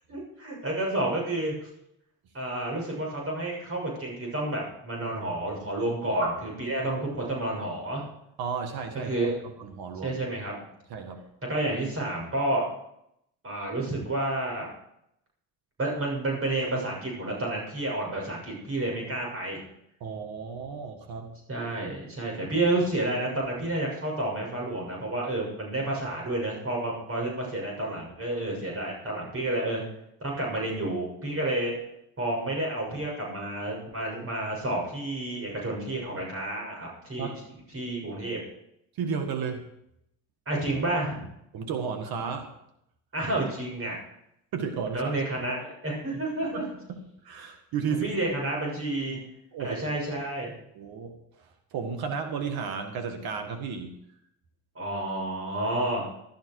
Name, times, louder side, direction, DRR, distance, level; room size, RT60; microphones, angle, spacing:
voice 1, 0.1-1.7 2.3-8.0 9.0-9.4 10.0-10.5 11.5-12.7 13.4-14.7 15.8-19.6 21.5-29.8 30.2-31.8 32.2-37.3 37.7-38.4 40.4-41.2 43.1-44.0 44.9-46.7 47.9-49.2 49.6-50.5 54.7-56.1, right 2 dB, 35° right, -1 dB, 6.7 m, -30 dB
voice 2, 8.4-9.3 9.6-10.2 10.6-11.2 20.0-21.4 37.2-37.4 39.0-39.7 41.5-42.5 44.5-45.1 46.5-48.0 49.5-49.8 50.7-54.0, right 6 dB, 70° right, 6 dB, 1.9 m, -33 dB
13.0 x 13.0 x 4.8 m, 0.77 s
cardioid pair, 90°, 37 cm